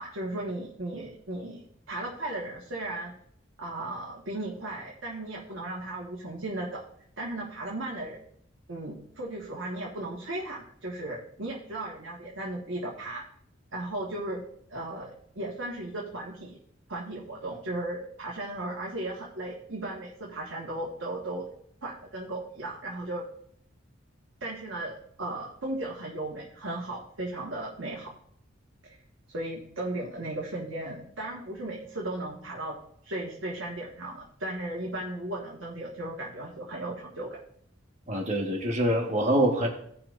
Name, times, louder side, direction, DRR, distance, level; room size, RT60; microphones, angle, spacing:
voice 1, 0.0-1.6 1.9-3.1 3.6-6.8 7.2-8.2 8.7-13.2 13.7-14.4 14.7-16.6 16.9-21.5 21.8-23.2 24.4-28.1 28.8-29.0 29.3-32.8 33.0-37.4, right 1 dB, 75° right, -3 dB, 1.6 m, -36 dB
voice 2, 38.1-39.7, right 1 dB, 35° right, 0 dB, 1.5 m, -25 dB
17.5 x 5.8 x 2.6 m, 0.69 s
head